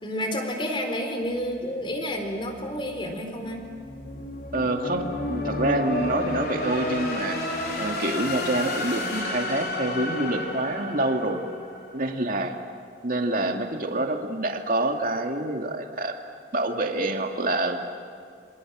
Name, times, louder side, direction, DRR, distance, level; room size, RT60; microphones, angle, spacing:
voice 1, 0.0-3.6, equal, 30° left, 4 dB, 4.2 m, -30 dB
sound 1, 1.3-12.3, left 1 dB, 55° left, 4.5 m, -32 dB
voice 2, 4.5-5.0 5.3-7.4 7.8-11.4 11.9-12.5 13.0-16.1 16.5-17.8, right 2 dB, 50° right, 3 dB, 2.3 m, -26 dB
28.0 x 26.0 x 7.6 m, 2.3 s
head